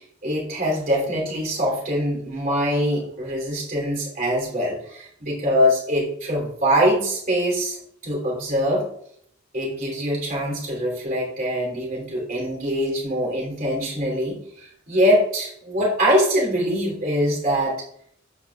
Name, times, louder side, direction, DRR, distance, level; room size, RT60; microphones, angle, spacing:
voice 1, 0.2-7.8 8.0-8.9 9.5-17.8, equal, 45° right, -2 dB, 3.0 m, -23 dB
13.5 x 4.7 x 2.4 m, 0.68 s
head